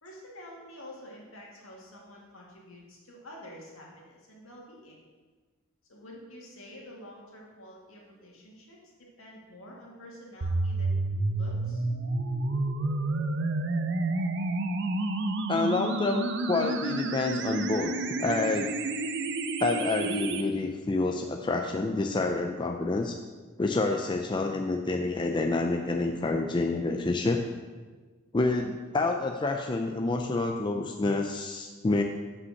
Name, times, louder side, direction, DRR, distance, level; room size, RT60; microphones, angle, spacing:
voice 1, 0.0-5.0 5.9-8.8 9.2-10.9 11.3-11.8, left 1 dB, 70° left, -3 dB, 2.3 m, -48 dB
sound 1, 10.4-20.4, right 2 dB, 55° right, 0.7 m, -30 dB
voice 2, 15.5-18.8 19.6-23.2 23.6-27.4 28.3-32.0, left 3 dB, 20° left, 3 dB, 0.4 m, -28 dB
8.1 x 5.5 x 6.4 m, 1.4 s
head